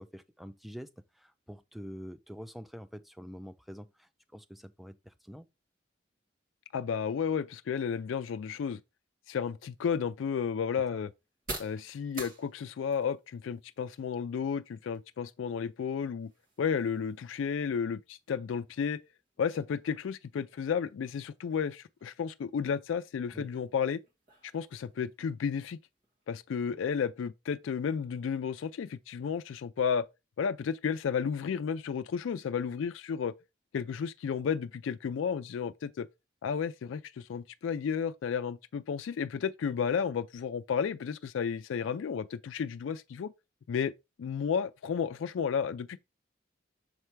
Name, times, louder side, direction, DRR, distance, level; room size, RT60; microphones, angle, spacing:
voice 1, 0.0-5.5 10.9-11.0 23.3-23.5, equal, ahead, 0.3 m, -46 dB
voice 2, 6.7-8.8 9.3-11.1 11.6-16.3 16.6-19.0 19.4-24.0 24.5-25.8 26.3-30.0 30.4-33.3 33.7-36.1 36.4-43.3 43.7-43.9 44.2-46.0, left 6 dB, 85° left, 0.3 m, -32 dB
sound 1, 9.3-26.9, right 3 dB, 45° right, 1.9 m, -52 dB
6.6 x 3.3 x 4.5 m
head